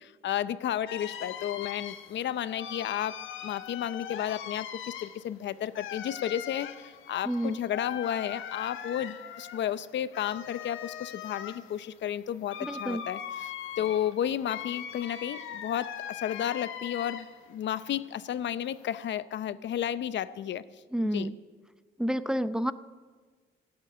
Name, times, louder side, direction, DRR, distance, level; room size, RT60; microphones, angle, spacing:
voice 1, 0.0-13.5 13.8-20.6 21.1-21.3, left 10 dB, 65° left, 16 dB, 0.7 m, -32 dB
sound 1, 0.9-17.5 17.9-19.0, left 9 dB, 80° left, 1.4 m, -41 dB
voice 2, 7.2-7.6 12.6-13.0 20.9-21.3 22.0-22.7, equal, 5° right, 14 dB, 0.6 m, -29 dB
16.5 x 8.9 x 9.4 m, 1.4 s
cardioid pair, 90°, 20 cm